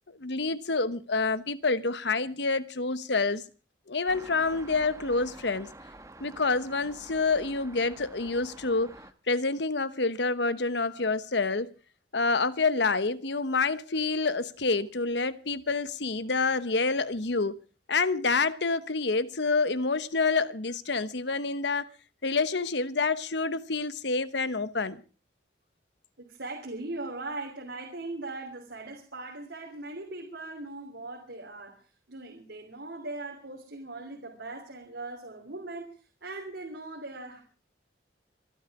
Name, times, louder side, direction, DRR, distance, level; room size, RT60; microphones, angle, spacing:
voice 1, 0.2-3.4 3.9-5.7 6.2-8.9 9.3-11.7 12.1-17.6 17.9-21.9 22.2-25.0, left 3 dB, 70° left, 1.1 m, -28 dB
sound 1, 4.1-9.1, right 2 dB, 15° right, 1.1 m, -48 dB
voice 2, 26.2-31.8 32.1-37.4, right 2 dB, 75° right, 3.1 m, -40 dB
25.5 x 11.5 x 4.8 m
head